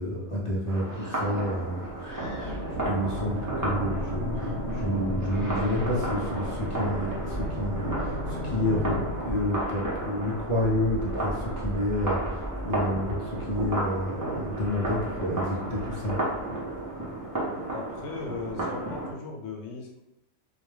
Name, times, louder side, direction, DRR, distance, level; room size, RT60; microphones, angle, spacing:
voice 1, 0.0-16.2, left 1 dB, 45° left, -5 dB, 0.4 m, -30 dB
sound 1, 0.7-19.1, right 1 dB, 25° right, 0.5 m, -33 dB
sound 2, 2.2-9.1, left 1 dB, 90° right, 1.0 m, -33 dB
voice 2, 17.7-20.0, left 4 dB, 85° left, 1 dB, 0.9 m, -38 dB
2.4 x 2.2 x 3.1 m, 0.90 s
omnidirectional pair, 1.2 m